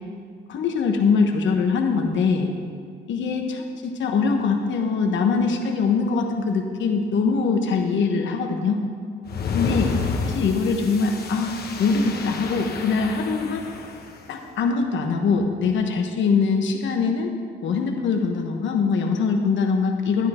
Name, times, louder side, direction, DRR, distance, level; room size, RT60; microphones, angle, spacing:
voice 1, 0.5-2.5 3.1-8.8 9.5-9.9 10.2-11.5 11.8-13.7 14.3-17.4 17.6-20.3, left 5 dB, 70° left, 4 dB, 1.3 m, -22 dB
sound 1, 9.3-14.2, left 4 dB, 55° left, 1.3 m, -30 dB
12.0 x 9.7 x 4.4 m, 2.1 s
cardioid pair, 90°, 20 cm